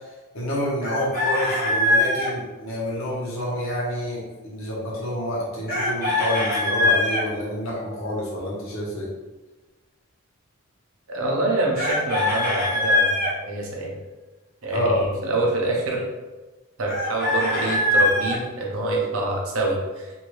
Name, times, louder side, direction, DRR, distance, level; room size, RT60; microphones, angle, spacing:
voice 1, 0.3-9.1 14.7-15.0, left 1 dB, 75° left, -4 dB, 1.0 m, -28 dB
Chicken rooster, 0.8-2.3 5.7-7.2 11.8-13.3 16.9-18.4, left 2 dB, 40° left, 0.9 m, -22 dB
voice 2, 11.1-14.0 14.6-16.1 16.8-20.1, right 2 dB, 80° right, -1 dB, 0.7 m, -26 dB
2.7 x 2.7 x 3.1 m, 1.2 s
head